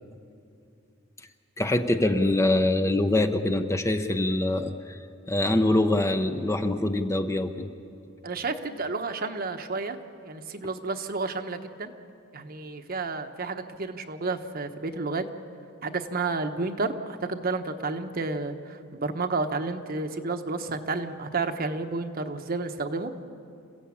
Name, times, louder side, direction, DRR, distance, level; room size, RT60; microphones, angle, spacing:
voice 1, 1.6-5.0 5.3-7.7, left 1 dB, 15° left, 7 dB, 0.8 m, -24 dB
voice 2, 8.2-10.0 10.2-11.9 12.3-15.2 15.8-23.1, right 3 dB, 45° right, 6 dB, 1.2 m, -31 dB
28.0 x 15.5 x 8.7 m, 2.5 s
head